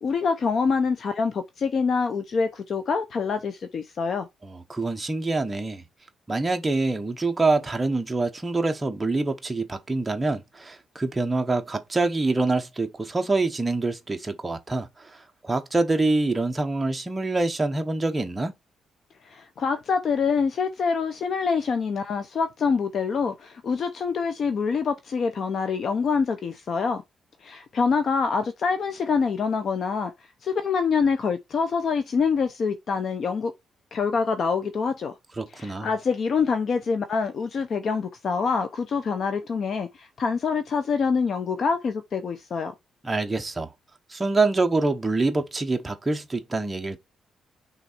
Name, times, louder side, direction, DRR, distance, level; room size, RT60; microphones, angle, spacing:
voice 1, 0.0-4.3 19.2-27.0 27.4-30.1 30.4-33.5 33.9-35.2 35.5-42.7, left 5 dB, 45° left, 0.7 m, -25 dB
voice 2, 4.4-5.8 6.3-15.2 15.4-18.5 35.4-35.9 43.0-43.7 44.1-47.0, right 3 dB, 15° right, 1.0 m, -25 dB
6.1 x 3.7 x 4.4 m
cardioid pair, 170°, 0 cm